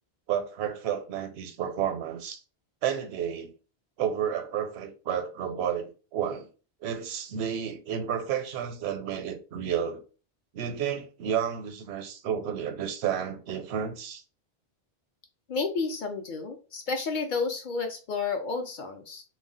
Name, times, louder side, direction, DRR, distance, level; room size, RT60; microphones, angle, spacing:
voice 1, 0.3-2.4 2.8-3.5 4.0-6.5 6.8-10.0 10.5-14.2, right 8 dB, 80° right, 0.8 m, -31 dB
voice 2, 15.5-19.2, left 4 dB, 60° left, 0.6 m, -31 dB
2.3 x 2.1 x 3.7 m
omnidirectional pair, 1.1 m